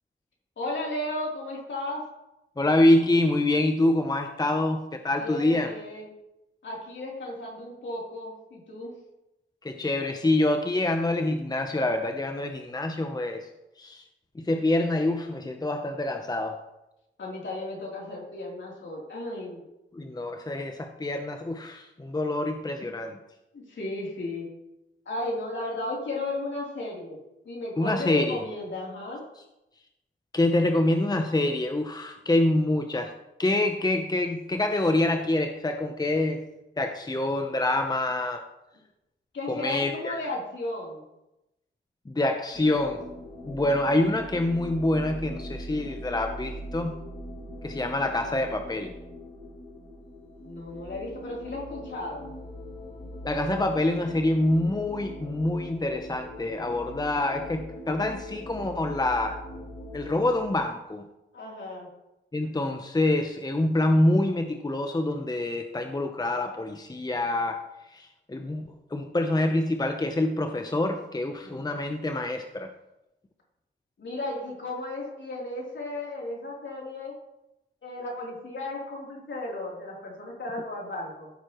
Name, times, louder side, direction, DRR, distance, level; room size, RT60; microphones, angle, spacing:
voice 1, 0.6-2.0 5.2-6.1 6.6-8.9 17.2-19.6 23.5-24.5 25.1-27.2 27.5-29.2 39.3-41.1 50.4-52.4 61.3-61.9 71.4-71.6 74.0-77.1 77.8-81.3, left 2 dB, 65° left, -3 dB, 3.5 m, -34 dB
voice 2, 2.6-5.7 9.6-13.5 13.8-14.0 14.3-16.6 19.9-23.2 27.8-28.4 30.3-36.4 36.8-38.5 39.5-40.2 42.1-43.0 43.5-46.9 47.6-48.9 53.2-59.4 59.9-61.0 62.3-72.7, left 1 dB, 20° left, 6 dB, 0.8 m, -26 dB
sound 1, 42.5-60.5, left 1 dB, 35° left, 2.8 m, -41 dB
14.5 x 6.6 x 3.1 m, 0.92 s
cardioid pair, 60°, 21 cm